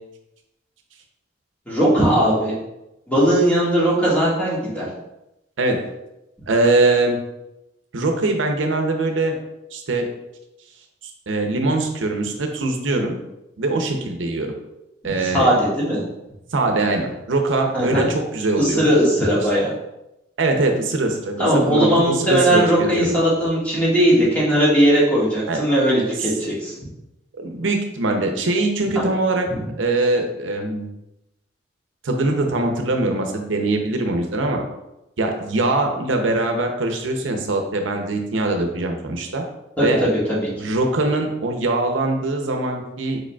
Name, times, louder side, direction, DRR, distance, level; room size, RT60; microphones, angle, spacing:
voice 1, 1.7-2.5 3.1-4.9 15.0-16.0 17.7-18.1 18.6-19.7 21.4-26.7 28.9-29.0 39.8-40.5, equal, 10° left, -8 dB, 1.6 m, -18 dB
voice 2, 6.5-7.2 7.9-9.4 9.7-10.1 11.3-13.2 13.6-14.6 15.0-15.5 16.5-18.9 20.4-23.1 25.5-25.6 27.4-29.5 29.8-30.9 32.0-34.6 35.2-39.4 39.8-40.0 40.6-43.2, right 2 dB, 85° right, 4 dB, 0.6 m, -22 dB
4.9 x 4.6 x 2.3 m, 0.91 s
head